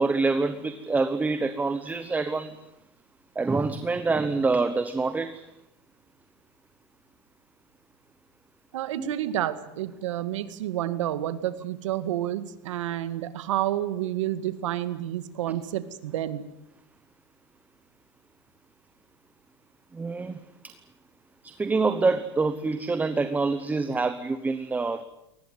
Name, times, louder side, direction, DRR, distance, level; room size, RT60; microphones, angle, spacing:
voice 1, 0.0-2.6 3.3-5.4 9.0-9.1 19.9-20.7 21.4-25.0, right 3 dB, 10° right, 11 dB, 1.0 m, -26 dB
voice 2, 8.7-16.4, right 12 dB, 85° right, 12 dB, 2.0 m, -29 dB
22.5 x 20.0 x 9.4 m, 0.83 s
supercardioid pair, 140°, 16 cm